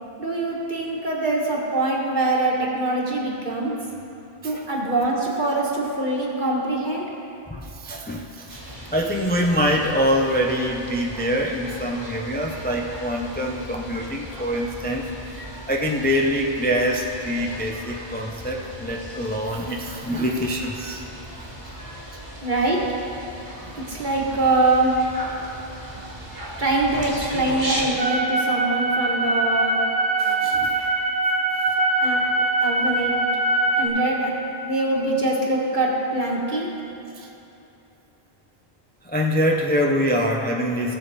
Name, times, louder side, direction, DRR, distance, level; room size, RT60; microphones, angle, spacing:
voice 1, 0.2-3.7 4.4-7.1 22.4-22.8 23.9-24.9 26.6-29.8 32.0-32.2 32.6-33.1 33.8-34.3 34.6-36.7, right 2 dB, 50° right, -2 dB, 1.6 m, -23 dB
voice 2, 7.5-8.6 8.9-21.1 21.3-21.5 30.2-31.0 37.2-37.3 39.0-41.0, equal, 10° left, 0 dB, 0.5 m, -25 dB
sound 1, 8.5-27.9, equal, 20° right, 1.8 m, -37 dB
sound 2, 28.0-33.9, right 2 dB, 90° right, 1.9 m, -22 dB
17.0 x 6.8 x 4.1 m, 2.9 s
omnidirectional pair, 1.1 m